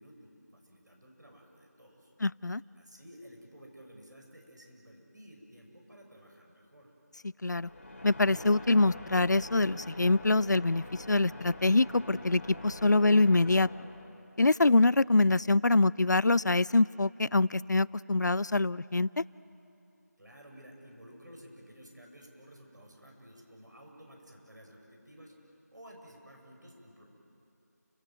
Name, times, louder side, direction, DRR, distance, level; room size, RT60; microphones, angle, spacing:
voice 1, 0.0-2.1 2.8-6.9 20.2-27.0, equal, 85° right, 1 dB, 7.7 m, -53 dB
voice 2, 2.2-2.6 7.2-7.7 8.0-13.7 14.4-19.2, left 2 dB, 80° left, 21 dB, 0.5 m, -25 dB
sound 1, 7.5-14.4, left 2 dB, 45° left, 2.8 m, -46 dB
30.0 x 17.0 x 9.3 m, 2.8 s
figure-of-eight pair, 175°, 10 cm